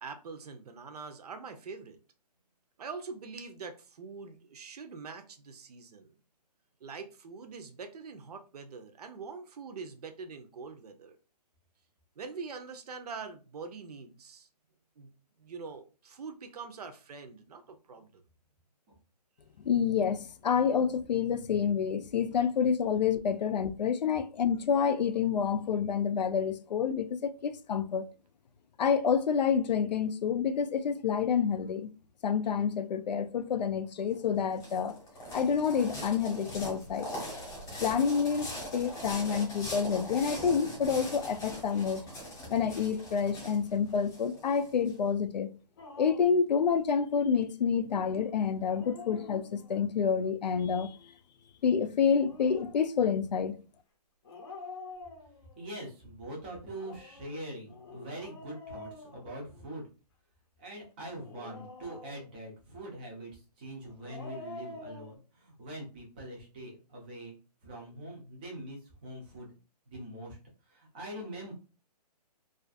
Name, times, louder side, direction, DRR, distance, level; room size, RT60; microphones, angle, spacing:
voice 1, 0.0-2.0 2.8-6.1 6.8-11.2 12.2-14.5 15.0-15.1 15.4-18.2, right 5 dB, 65° right, 0.6 m, -44 dB
voice 2, 19.7-28.0 28.8-31.9 32.2-35.0 35.3-37.1 37.8-38.5 38.7-42.0 42.5-45.5 46.0-51.0 51.6-53.6, left 6 dB, 80° left, 0.4 m, -28 dB
sound 1, 34.1-44.9, equal, 15° left, 0.9 m, -41 dB
Dog, 45.8-46.4 48.5-49.9 52.0-52.7 54.2-55.7 56.6-59.8 61.1-62.5 63.8-65.2, left 3 dB, 35° left, 0.6 m, -47 dB
voice 3, 55.6-59.9 60.6-67.3 67.6-69.6 69.9-70.4 70.7-71.5, right 1 dB, 15° right, 0.5 m, -43 dB
2.4 x 2.4 x 2.4 m
hypercardioid pair, 165°, 21 cm